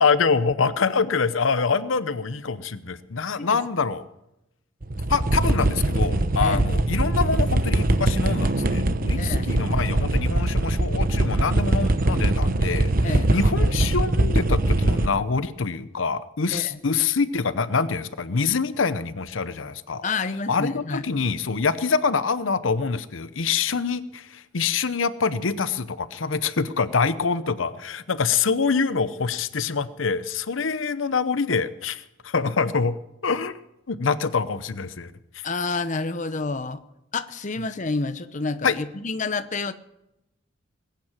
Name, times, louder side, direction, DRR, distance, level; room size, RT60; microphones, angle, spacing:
voice 1, 0.0-4.0 5.1-20.0 20.5-33.0 33.2-33.5 33.9-35.1 38.6-38.8, left 5 dB, 90° left, 14 dB, 0.8 m, -25 dB
sound 1, 4.8-15.1, right 2 dB, 45° right, 1.0 m, -22 dB
voice 2, 9.2-9.5 13.0-13.3 16.5-16.8 20.0-21.0 35.4-36.8 37.1-39.7, left 3 dB, 40° left, 11 dB, 0.9 m, -29 dB
20.5 x 9.3 x 7.3 m, 0.86 s
head